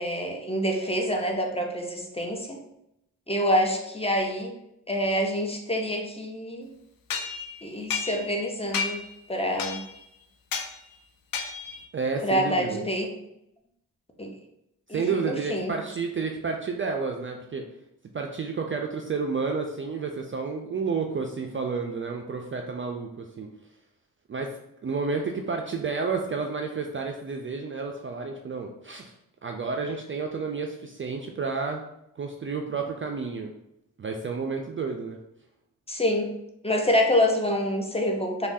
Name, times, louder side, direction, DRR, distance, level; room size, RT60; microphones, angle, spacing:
voice 1, 0.0-2.6 3.3-4.5 4.9-6.7 7.6-9.0 9.3-9.8 12.2-13.1 14.2-14.3 14.9-15.7 35.9-36.3 36.6-38.5, equal, 15° left, 2 dB, 0.6 m, -26 dB
sound 1, 7.1-8.4 8.7-9.1 9.6-10.0 10.5-10.7 11.3-11.8, left 6 dB, 60° left, 0.5 m, -32 dB
voice 2, 11.9-12.8 14.9-17.6 18.1-23.5 24.3-29.1 29.4-31.8 32.2-33.5 34.0-35.2, right 4 dB, 35° right, 3 dB, 0.4 m, -30 dB
3.3 x 2.3 x 2.6 m, 0.81 s
supercardioid pair, 40°, 38 cm